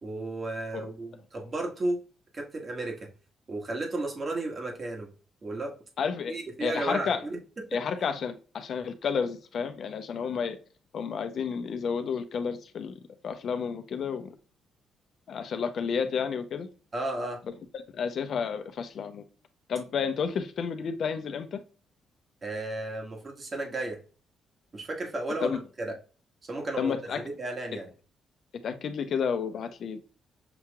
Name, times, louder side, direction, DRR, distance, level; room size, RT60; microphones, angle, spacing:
voice 1, 0.0-2.0 2.3-3.1 3.5-5.1 5.4-5.8 6.3-7.4 7.7-7.8 16.9-17.4 22.4-24.0 24.7-25.9 26.5-27.9, right 2 dB, 35° right, 1.5 m, -33 dB
voice 2, 6.0-7.3 7.7-10.6 10.9-12.9 13.2-14.3 15.3-16.7 17.9-19.2 19.7-21.6 25.4-25.6 26.8-27.2 28.6-30.0, left 6 dB, 60° left, 0.7 m, -31 dB
6.9 x 2.9 x 2.3 m
cardioid pair, 90°, 0 cm